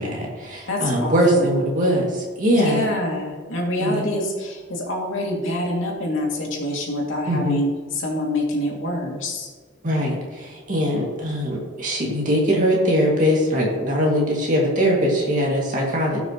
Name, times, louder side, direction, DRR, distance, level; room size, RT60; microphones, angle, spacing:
voice 1, 0.0-2.8 3.8-4.0 7.3-7.6 9.8-16.2, equal, 40° right, -2 dB, 2.3 m, -21 dB
voice 2, 0.7-1.6 2.5-9.5, left 1 dB, 80° left, -1 dB, 2.4 m, -26 dB
17.0 x 6.0 x 3.0 m, 1.5 s
head